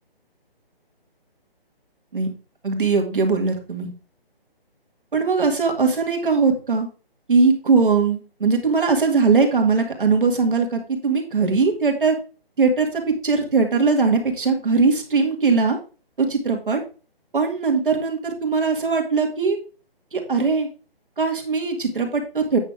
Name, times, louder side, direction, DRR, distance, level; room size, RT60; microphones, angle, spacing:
voice 1, 2.6-3.9 5.1-6.9 7.3-12.2 12.6-15.8 16.2-16.8 17.3-19.6 20.1-20.7 21.2-22.6, right 4 dB, 60° right, 4 dB, 2.4 m, -20 dB
8.9 x 6.5 x 3.5 m, 0.35 s
hypercardioid pair, 175°, 30 cm